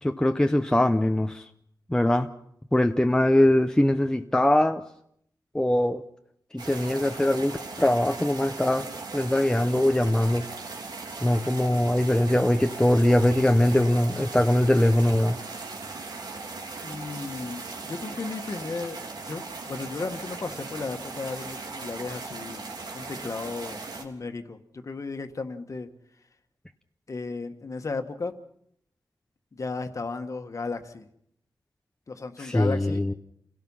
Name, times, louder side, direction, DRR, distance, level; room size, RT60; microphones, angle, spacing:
voice 1, 0.0-1.4 1.9-2.3 2.7-4.8 5.5-6.0 6.5-8.9 9.1-10.4 11.2-15.4 32.4-33.1, left 1 dB, 10° left, 6 dB, 0.8 m, -22 dB
sound 1, 6.6-24.0, right 3 dB, 65° right, 3.2 m, -38 dB
voice 2, 16.8-19.0 19.3-22.6 22.9-25.9 27.1-28.3 29.5-31.1 32.1-33.0, left 3 dB, 45° left, 7 dB, 1.6 m, -34 dB
29.0 x 17.0 x 5.7 m, 0.70 s
wide cardioid pair, 130°, 8 cm